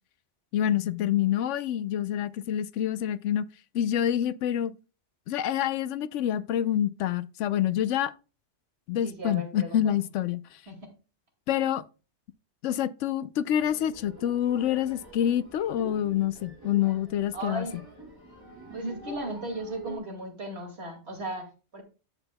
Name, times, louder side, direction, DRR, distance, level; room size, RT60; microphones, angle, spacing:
voice 1, 0.5-3.5 3.7-4.8 5.3-8.1 8.9-10.6 11.5-11.8 12.6-17.7, left 10 dB, 90° left, 0.9 m, -27 dB
voice 2, 9.0-9.9 10.7-10.8 17.3-17.8 18.7-21.8, right 1 dB, 60° right, 2.5 m, -36 dB
sound 1, 13.6-20.0, right 3 dB, 20° right, 3.0 m, -45 dB
10.0 x 8.0 x 2.2 m
omnidirectional pair, 1.2 m